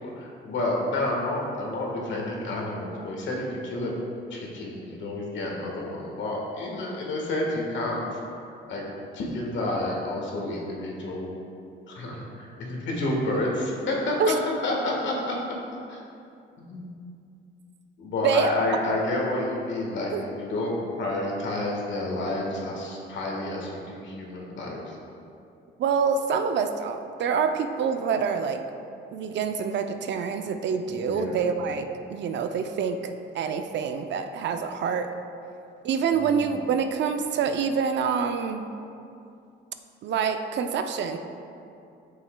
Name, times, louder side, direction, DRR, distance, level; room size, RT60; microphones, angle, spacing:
voice 1, 0.0-3.9 4.3-8.2 8.7-8.8 9.1-11.4 11.9-14.3 14.6-15.3 15.9-16.0 16.6-16.9 18.0-25.0 30.8-31.5 36.1-36.6, left 2 dB, 70° left, -2 dB, 1.4 m, -30 dB
voice 2, 25.8-28.6 29.1-35.1 35.8-38.7 40.0-41.2, right 6 dB, 65° right, 7 dB, 0.5 m, -26 dB
8.3 x 5.5 x 2.2 m, 2.5 s
cardioid pair, 90°, 20 cm